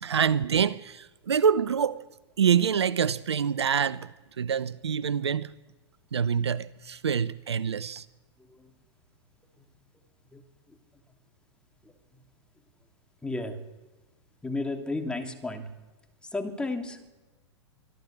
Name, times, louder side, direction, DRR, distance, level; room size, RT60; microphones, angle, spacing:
voice 1, 0.0-2.0 2.4-4.1 4.4-5.5 6.1-8.0, right 7 dB, 70° right, 0.6 m, -26 dB
voice 2, 13.2-13.6 14.4-15.7 16.3-17.0, left 2 dB, 5° left, 2.8 m, -32 dB
24.5 x 13.5 x 8.7 m
figure-of-eight pair, 100°, 15 cm